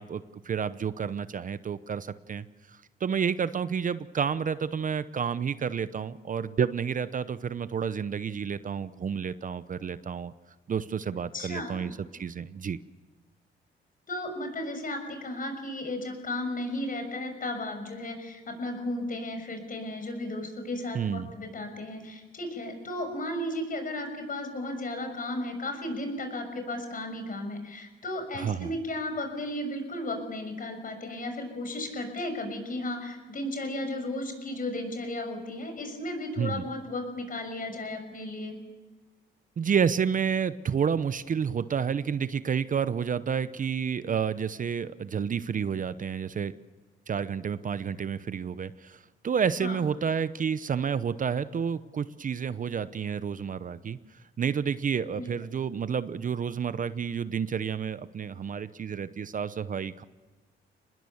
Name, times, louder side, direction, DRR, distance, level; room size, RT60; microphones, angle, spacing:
voice 1, 0.0-10.3 10.7-12.8 20.9-21.3 28.3-28.7 36.4-36.6 39.6-46.5 47.1-54.0 54.4-60.0, right 7 dB, 40° right, 14 dB, 0.8 m, -30 dB
voice 2, 11.3-11.8 14.1-38.6 49.6-49.8 55.1-55.3, left 1 dB, 45° left, 6 dB, 6.5 m, -34 dB
25.5 x 20.0 x 7.2 m, 1.3 s
cardioid pair, 90°, 20 cm